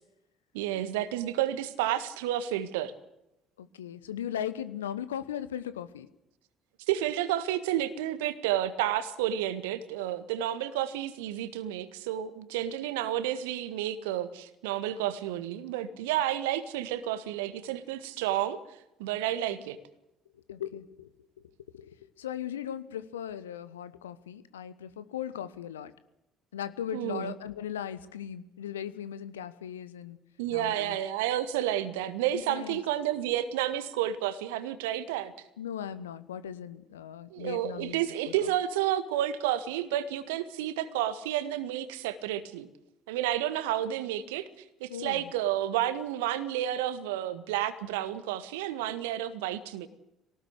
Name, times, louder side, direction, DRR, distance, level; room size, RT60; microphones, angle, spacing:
voice 1, 0.5-2.9 6.9-18.6 19.0-19.8 26.9-27.3 30.4-35.3 37.3-42.7 43.1-44.5 44.8-49.9, right 12 dB, 70° right, 13 dB, 1.6 m, -31 dB
voice 2, 3.6-6.1 20.3-21.1 21.7-25.9 26.5-30.2 30.5-31.0 32.3-32.8 35.6-38.0 38.3-38.5 44.9-45.3, left 9 dB, 75° left, 14 dB, 1.1 m, -38 dB
22.5 x 18.5 x 8.3 m, 0.85 s
figure-of-eight pair, 55°, 0 cm